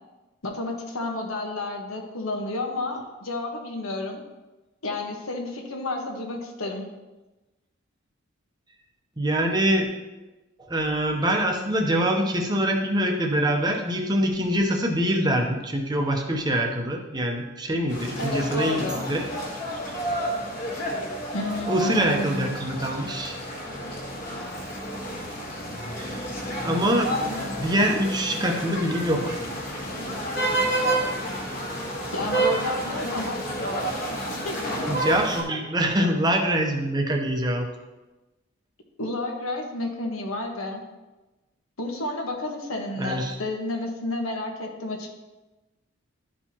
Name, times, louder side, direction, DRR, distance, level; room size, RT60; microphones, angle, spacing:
voice 1, 0.4-4.2 4.8-6.8 18.2-19.0 21.3-22.6 32.1-33.4 34.3-34.6 39.0-40.8 41.8-45.1, left 1 dB, 90° left, 2 dB, 1.2 m, -31 dB
voice 2, 9.2-9.9 10.6-19.2 21.7-23.4 26.0-26.3 26.6-27.1 27.6-29.4 34.9-37.7 43.0-43.3, equal, 20° right, 3 dB, 0.7 m, -24 dB
sound 1, 17.9-35.4, right 1 dB, 40° left, 1.4 m, -30 dB
12.0 x 4.5 x 2.9 m, 1.1 s
head